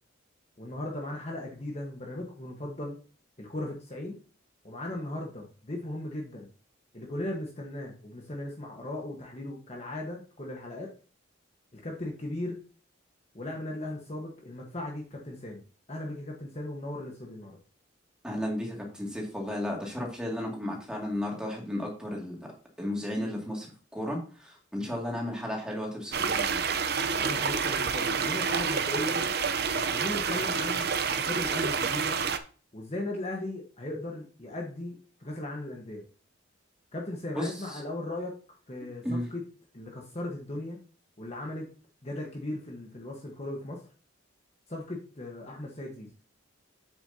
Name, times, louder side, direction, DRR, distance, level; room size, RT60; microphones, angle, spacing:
voice 1, 0.6-3.0 3.4-4.2 4.6-6.5 6.9-10.9 11.7-12.6 13.3-15.6 15.9-17.5 27.1-29.2 29.9-32.2 32.7-36.0 36.9-38.4 38.7-39.4 39.7-40.8 41.2-41.7 42.0-43.8 44.7-46.1, left 1 dB, 30° left, 0 dB, 1.3 m, -37 dB
voice 2, 18.2-22.5 22.8-23.7 23.9-26.8 37.3-37.8 39.0-39.2, left 1 dB, 5° right, -2 dB, 2.3 m, -34 dB
sound 1, 26.1-32.4, right 6 dB, 50° right, 0.7 m, -28 dB
8.0 x 7.4 x 2.8 m, 0.38 s
head